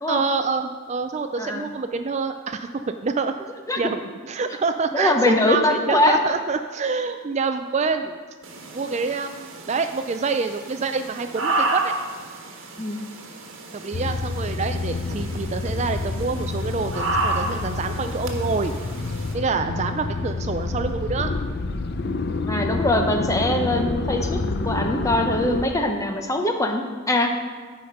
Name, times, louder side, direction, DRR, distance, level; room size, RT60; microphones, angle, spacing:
voice 1, 0.1-3.3 3.8-8.2 8.7-11.9 13.7-18.7 19.3-21.3, right 4 dB, 30° right, 8 dB, 0.3 m, -26 dB
voice 2, 1.4-1.7 3.7-3.8 4.9-6.2 12.8-13.1 22.5-24.4 24.6-27.3, left 1 dB, 15° left, 4 dB, 0.8 m, -22 dB
sound 1, 8.4-19.3, right 2 dB, 70° right, 1.4 m, -31 dB
sound 2, 13.9-25.7, left 3 dB, 50° left, 0.5 m, -28 dB
14.0 x 5.0 x 5.8 m, 1.5 s
head